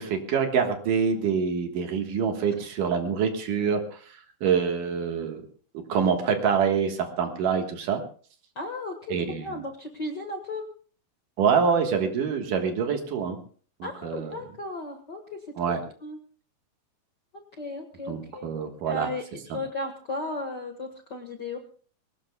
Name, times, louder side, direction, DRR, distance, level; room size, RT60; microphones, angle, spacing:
voice 1, 0.0-5.4 5.9-8.0 9.1-9.5 11.4-13.4 13.8-14.3 15.6-15.8 18.1-19.1, right 6 dB, 65° right, 4 dB, 2.9 m, -26 dB
voice 2, 8.5-10.6 13.8-15.4 15.7-16.2 17.6-18.5 18.8-21.6, left 2 dB, 50° left, 3 dB, 1.3 m, -35 dB
23.0 x 18.0 x 2.3 m, 0.43 s
omnidirectional pair, 4.2 m